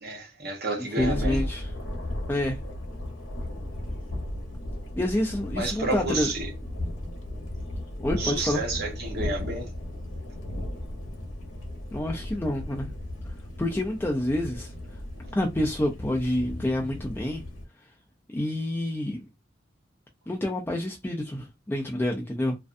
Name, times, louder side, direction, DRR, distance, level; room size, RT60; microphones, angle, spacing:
voice 1, 0.0-1.4 5.6-6.5 8.2-9.7, right 2 dB, 55° right, 0.9 m, -31 dB
Thunder, 1.0-17.6, left 1 dB, 80° left, 0.8 m, -35 dB
voice 2, 1.0-1.7 2.3-2.6 5.0-6.3 8.0-8.6 11.9-12.9 13.2-15.0 15.3-17.4 17.8-17.9 18.3-19.3 20.3-22.6, left 1 dB, 10° left, 0.3 m, -28 dB
2.5 x 2.2 x 2.4 m
head